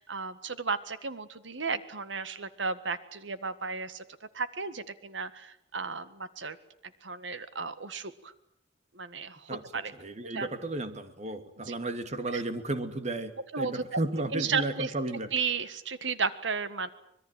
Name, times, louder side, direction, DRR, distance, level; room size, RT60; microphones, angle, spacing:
voice 1, 0.0-4.0 4.3-6.6 7.0-8.3 8.9-9.9 10.4-10.5 11.7-11.8 12.3-12.4 13.5-14.0 14.3-14.9 15.3-16.9, right 5 dB, 85° right, 13 dB, 1.9 m, -34 dB
voice 2, 9.9-15.3, right 2 dB, 40° right, 9 dB, 2.5 m, -34 dB
25.5 x 21.5 x 9.1 m, 0.74 s
head